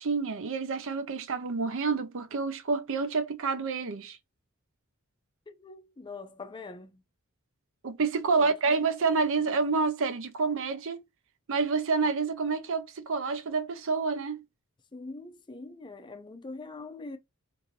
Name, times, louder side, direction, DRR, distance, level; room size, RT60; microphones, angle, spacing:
voice 1, 0.0-4.2 7.8-11.0 11.5-14.4, right 4 dB, 65° right, 0.6 m, -28 dB
voice 2, 5.5-7.0 8.4-8.5 14.9-17.2, left 3 dB, 20° left, 0.4 m, -43 dB
2.7 x 2.6 x 3.1 m
head